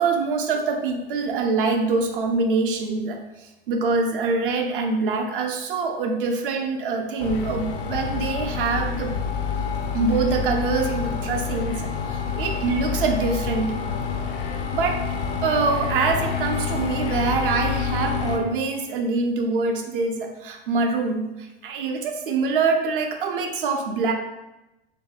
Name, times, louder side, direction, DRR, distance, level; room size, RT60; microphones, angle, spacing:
voice 1, 0.0-9.2 9.9-13.7 14.7-15.0 15.4-24.1, right 4 dB, 60° right, 3 dB, 0.5 m, -24 dB
sound 1, 7.2-18.4, left 6 dB, 60° left, 0.4 m, -28 dB
2.6 x 2.6 x 2.2 m, 0.98 s
figure-of-eight pair, 85°, 31 cm